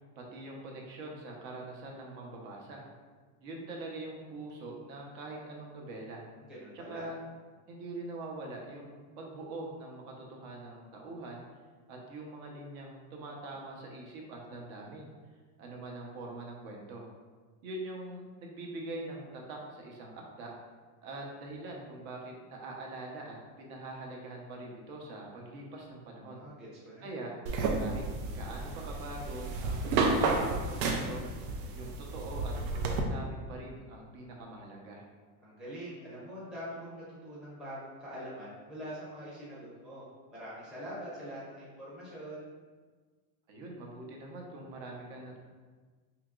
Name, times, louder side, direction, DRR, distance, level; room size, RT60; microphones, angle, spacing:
voice 1, 0.2-2.8 3.4-6.2 6.7-7.2 7.7-11.4 11.9-15.1 15.6-17.1 17.6-20.5 21.0-26.4 27.0-27.3 27.8-28.0 28.3-31.2 31.7-32.5 32.9-35.0 43.5-45.4, right 2 dB, 60° right, -1 dB, 0.9 m, -43 dB
voice 2, 6.5-7.1 26.2-27.1 35.4-40.0 40.3-42.5, equal, ahead, -10 dB, 0.5 m, -44 dB
sound 1, 27.5-33.0, right 3 dB, 85° right, 0.7 m, -31 dB
4.9 x 2.9 x 2.4 m, 1.4 s
supercardioid pair, 165°, 48 cm